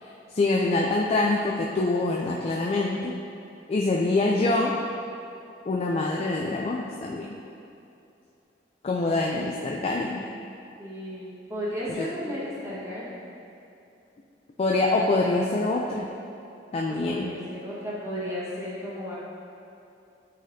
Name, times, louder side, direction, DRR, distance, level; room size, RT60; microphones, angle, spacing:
voice 1, 0.0-3.1 3.7-4.7 5.7-7.3 8.8-10.2 11.9-12.4 14.6-16.1 16.7-17.3, left 2 dB, 35° left, -1 dB, 0.3 m, -25 dB
voice 2, 10.8-13.2 16.9-19.1, equal, 15° right, -8 dB, 1.4 m, -34 dB
9.2 x 4.0 x 2.7 m, 2.7 s
head